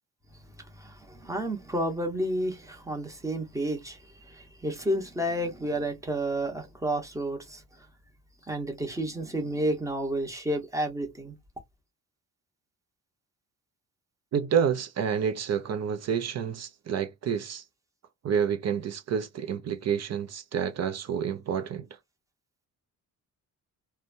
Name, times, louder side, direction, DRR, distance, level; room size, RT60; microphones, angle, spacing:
voice 1, 0.7-7.6 8.5-11.3, right 1 dB, 10° right, 0.9 m, -31 dB
voice 2, 14.3-17.6 18.2-21.9, right 7 dB, 45° right, 0.5 m, -29 dB
2.8 x 2.2 x 2.5 m
cardioid pair, 145°, 36 cm